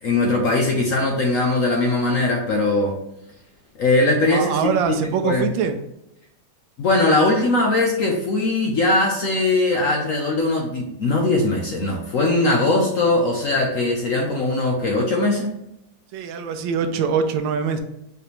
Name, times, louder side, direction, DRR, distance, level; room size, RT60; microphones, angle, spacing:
voice 1, 0.0-3.0 3.8-4.6 5.0-5.5 6.8-15.5, left 2 dB, 65° left, 0 dB, 0.8 m, -20 dB
voice 2, 4.3-5.8 16.1-17.8, right 6 dB, 90° right, 8 dB, 1.3 m, -23 dB
4.9 x 3.3 x 3.0 m, 0.83 s
omnidirectional pair, 2.0 m